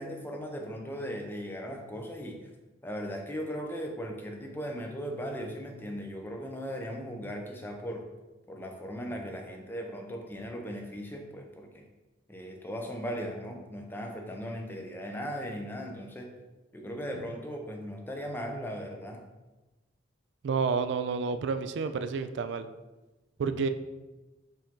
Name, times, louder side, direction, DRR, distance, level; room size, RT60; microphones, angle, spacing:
voice 1, 0.0-2.4 2.8-8.1 8.5-11.8 12.3-16.3 16.7-19.2, equal, 10° left, 2 dB, 0.5 m, -38 dB
voice 2, 20.4-22.7 23.4-23.7, right 5 dB, 65° right, 10 dB, 0.3 m, -29 dB
5.5 x 2.6 x 3.6 m, 1.1 s
head